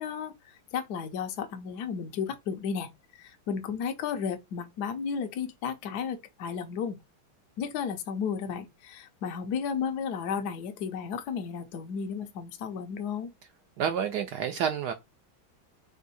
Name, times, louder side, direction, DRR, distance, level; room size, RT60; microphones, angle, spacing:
voice 1, 0.0-7.0 7.6-13.3, left 6 dB, 70° left, 1.0 m, -33 dB
voice 2, 13.8-14.9, right 8 dB, 80° right, 0.9 m, -29 dB
3.7 x 2.6 x 4.1 m
omnidirectional pair, 2.2 m